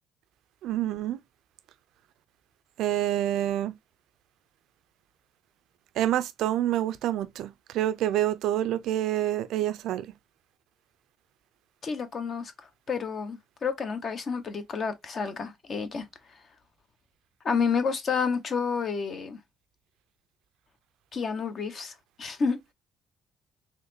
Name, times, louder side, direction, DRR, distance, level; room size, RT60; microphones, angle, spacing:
voice 1, 0.6-1.2 2.8-3.7 6.0-10.1, right 12 dB, 75° right, 0.4 m, -27 dB
voice 2, 11.8-12.5 12.9-16.0 17.4-19.4 21.1-22.6, left 5 dB, 40° left, 0.9 m, -30 dB
4.0 x 3.0 x 2.6 m
cardioid pair, 125°, 0 cm